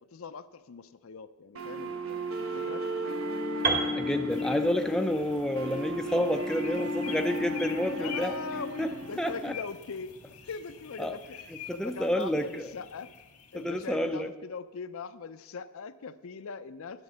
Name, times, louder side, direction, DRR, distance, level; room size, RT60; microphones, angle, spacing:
voice 1, 0.1-2.9 7.9-10.2 10.5-11.4 11.7-13.1 13.5-17.0, left 5 dB, 70° left, 12 dB, 0.5 m, -41 dB
sound 1, 1.5-9.5, equal, 70° right, 1.0 m, -34 dB
Piano, 3.6-7.6, right 4 dB, 40° right, 1.4 m, -34 dB
voice 2, 3.9-8.4 8.8-9.5 11.0-11.2 11.7-12.7 13.5-14.3, left 1 dB, 5° left, 6 dB, 0.4 m, -29 dB
sound 2, 4.3-14.2, left 7 dB, 90° left, 1.5 m, -47 dB
11.0 x 8.1 x 6.2 m, 1.1 s
head